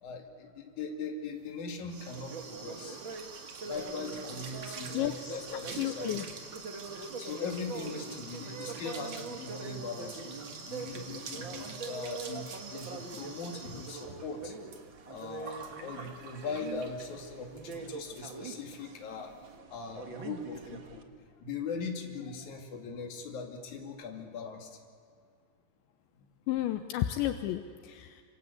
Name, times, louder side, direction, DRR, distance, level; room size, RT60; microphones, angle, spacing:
voice 1, 0.0-3.0 3.6-6.4 7.2-10.4 10.7-14.6 15.1-19.4 19.7-21.1 21.4-24.7 26.2-26.3, left 4 dB, 45° left, 2 dB, 3.5 m, -40 dB
sound 1, 1.4-17.2 17.6-17.8 18.1-18.2 18.5-18.9, right 5 dB, 45° right, 2.6 m, -46 dB
sound 2, 2.1-21.0, right 4 dB, 65° right, 1.1 m, -44 dB
voice 2, 4.9-5.4 5.7-6.2 26.5-28.2, left 13 dB, 80° left, 8 dB, 3.0 m, -32 dB
27.0 x 26.5 x 8.3 m, 2.3 s
omnidirectional pair, 5.4 m